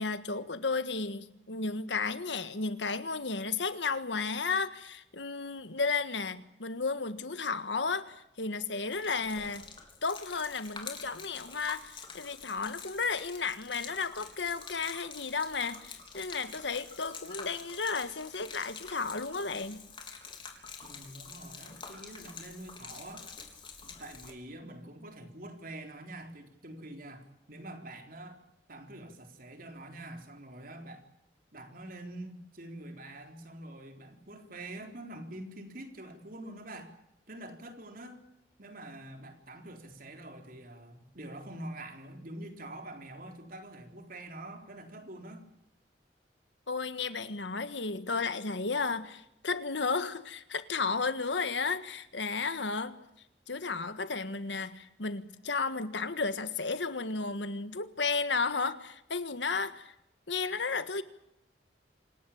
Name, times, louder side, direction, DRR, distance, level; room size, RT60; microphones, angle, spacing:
voice 1, 0.0-9.7 10.0-19.8 46.7-53.0 53.5-59.9 60.3-61.0, left 4 dB, 90° left, 1.6 m, -33 dB
Gurgling / Liquid, 8.9-24.3, left 5 dB, 30° left, 3.7 m, -47 dB
voice 2, 20.8-23.3 23.8-28.4 28.7-31.0 31.5-36.9 37.3-38.2 38.6-45.4, right 1 dB, 55° right, 4.1 m, -45 dB
27.0 x 18.0 x 8.8 m
head